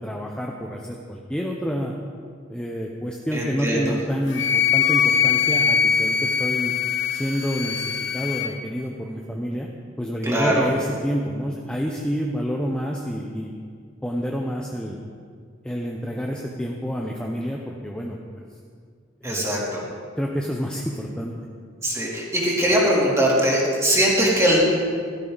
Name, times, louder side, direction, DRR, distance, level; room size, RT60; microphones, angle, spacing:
voice 1, 0.0-2.0 2.5-6.7 7.1-9.7 10.0-13.5 14.0-15.0 15.6-18.4 19.2-19.6 20.2-21.4, equal, 5° left, -1 dB, 0.9 m, -28 dB
voice 2, 3.3-3.9 10.2-10.7 19.2-19.8 21.8-24.6, right 1 dB, 15° right, -5 dB, 3.2 m, -21 dB
Wind instrument woodwind instrument, 4.3-8.5, left 7 dB, 65° left, 1.2 m, -22 dB
16.5 x 13.5 x 4.1 m, 2.1 s
head